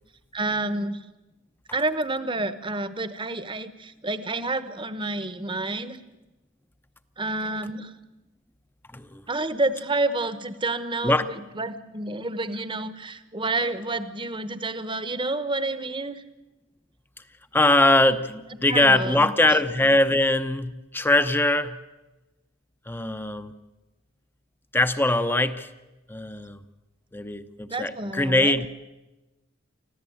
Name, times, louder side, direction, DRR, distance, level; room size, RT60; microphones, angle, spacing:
voice 1, 0.3-1.0 1.7-6.0 7.2-7.9 9.3-16.2 18.7-19.3 27.7-28.6, right 2 dB, 25° right, 12 dB, 1.1 m, -29 dB
voice 2, 17.5-21.8 22.9-23.5 24.7-25.7 26.1-26.6 27.1-28.7, left 2 dB, 10° left, 10 dB, 0.8 m, -22 dB
25.0 x 15.0 x 8.7 m, 1.1 s
head